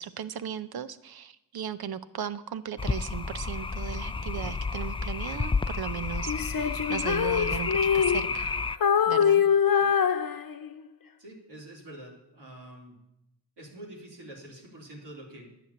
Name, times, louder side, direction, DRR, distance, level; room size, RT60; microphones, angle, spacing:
voice 1, 0.0-8.5 9.1-9.4, right 8 dB, 65° right, 13 dB, 0.8 m, -37 dB
sound 1, 2.8-8.8, left 4 dB, 15° left, 0.3 m, -31 dB
Female singing, 6.3-8.5 8.8-10.9, left 8 dB, 60° left, 1.0 m, -24 dB
voice 2, 11.2-13.0 13.6-15.6, right 1 dB, 85° right, -3 dB, 3.3 m, -46 dB
10.0 x 6.1 x 8.1 m, 0.86 s
supercardioid pair, 45°, 40 cm